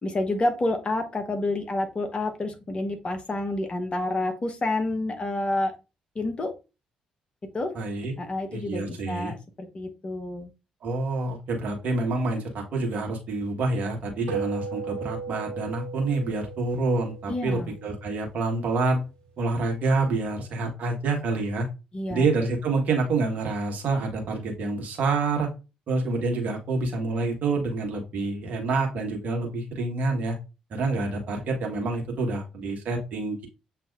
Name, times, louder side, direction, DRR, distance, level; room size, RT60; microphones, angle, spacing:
voice 1, 0.0-5.7 6.1-6.5 7.5-7.7 8.2-10.5 17.3-17.8 21.9-22.3, left 2 dB, 30° left, 6 dB, 0.9 m, -29 dB
voice 2, 7.7-8.1 8.5-9.3 10.8-19.0 19.4-21.7 22.1-25.5 25.9-30.4 30.7-33.5, right 3 dB, 50° right, 1 dB, 1.3 m, -27 dB
sound 1, 14.3-18.9, right 5 dB, 75° right, 1.6 m, -37 dB
7.4 x 2.7 x 2.4 m, 0.29 s
figure-of-eight pair, 40°, 3 cm